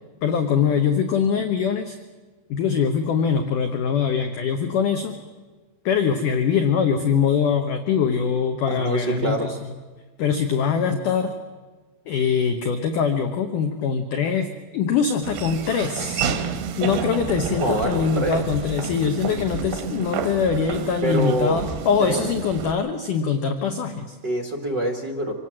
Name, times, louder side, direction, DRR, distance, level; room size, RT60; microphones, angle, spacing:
voice 1, 0.2-2.0 2.5-5.2 5.8-9.7 10.2-11.3 12.1-16.3 16.8-24.2, left 6 dB, 65° left, 6 dB, 2.3 m, -23 dB
voice 2, 8.7-9.5 17.6-18.5 21.0-21.6 22.1-22.2 24.2-25.4, right 2 dB, 60° right, 2 dB, 1.1 m, -25 dB
Laughter / Walk footsteps, 15.2-22.7, right 7 dB, 85° right, 3.7 m, -30 dB
26.0 x 18.5 x 7.7 m, 1.4 s
omnidirectional pair, 4.7 m